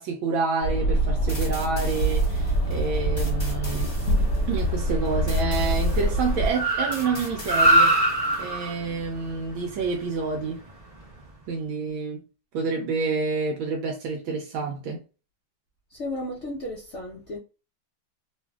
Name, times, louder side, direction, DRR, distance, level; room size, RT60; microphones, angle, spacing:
voice 1, 0.0-3.9 4.5-7.9 8.4-10.6 11.5-12.2 12.5-15.0, right 4 dB, 80° right, 1.4 m, -28 dB
sound 1, 0.6-6.5, right 1 dB, 55° left, 1.3 m, -24 dB
sound 2, 1.3-8.4, left 1 dB, 15° left, 1.0 m, -42 dB
Car, 1.8-11.2, right 1 dB, 30° right, 0.7 m, -27 dB
voice 2, 15.9-17.4, left 1 dB, 75° left, 0.6 m, -34 dB
3.2 x 2.5 x 2.2 m
omnidirectional pair, 2.2 m